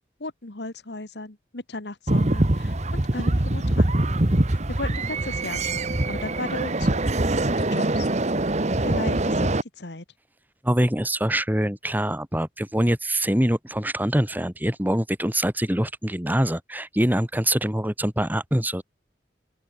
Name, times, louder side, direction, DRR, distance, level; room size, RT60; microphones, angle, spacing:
voice 1, 0.2-4.0 4.5-7.0 7.5-8.1 8.8-9.5 9.8-10.1, left 2 dB, 75° left, 1.8 m, -36 dB
sound 1, 2.1-9.6, right 1 dB, 40° right, 1.4 m, -23 dB
voice 2, 10.6-18.8, right 1 dB, 10° right, 2.9 m, -24 dB
open air
head